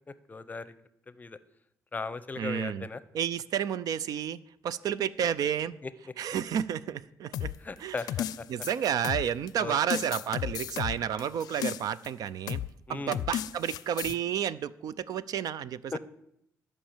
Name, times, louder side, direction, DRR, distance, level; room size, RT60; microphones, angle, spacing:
voice 1, 0.1-0.7 1.2-1.4 1.9-3.0 5.8-5.9 7.6-8.5 9.6-10.0 12.9-13.2 15.9-16.0, left 4 dB, 25° left, 15 dB, 0.6 m, -37 dB
voice 2, 2.4-2.9 3.1-4.4 4.6-5.7 6.2-7.5 7.8-7.9 8.5-12.6 12.9-16.0, right 9 dB, 75° right, 17 dB, 0.5 m, -31 dB
sound 1, 7.3-9.5 9.9-12.1 12.5-12.7 13.1-14.2, left 11 dB, 85° left, 0.5 m, -34 dB
13.0 x 5.5 x 7.3 m, 0.74 s
cardioid pair, 115°, 7 cm